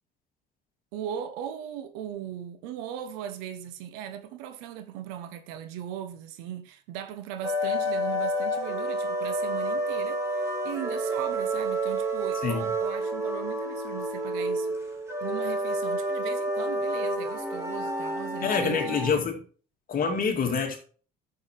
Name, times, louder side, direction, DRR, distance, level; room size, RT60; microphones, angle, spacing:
voice 1, 0.9-14.7 15.2-19.2, right 10 dB, 80° right, 1.0 m, -38 dB
sound 1, 7.4-19.0, right 1 dB, 15° right, 2.9 m, -29 dB
voice 2, 18.4-19.4 19.9-20.8, left 5 dB, 45° left, 2.2 m, -26 dB
9.2 x 7.0 x 3.4 m
supercardioid pair, 80°, 20 cm